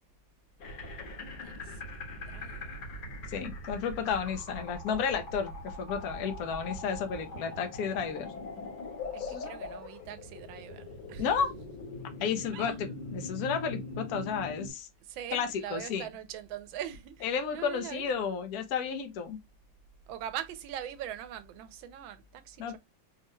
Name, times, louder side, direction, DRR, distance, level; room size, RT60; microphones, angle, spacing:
sound 1, 0.6-14.7, left 2 dB, 90° left, 2.3 m, -41 dB
voice 1, 1.4-1.7 2.1-2.8 9.1-11.3 12.5-12.7 15.1-18.1 20.1-22.8, right 10 dB, 85° right, 1.4 m, -42 dB
voice 2, 3.3-8.3 9.2-9.6 11.2-11.5 12.2-14.9 15.3-16.1 17.2-19.4 22.6-22.8, left 6 dB, 65° left, 1.0 m, -32 dB
4.6 x 2.2 x 3.0 m
omnidirectional pair, 2.1 m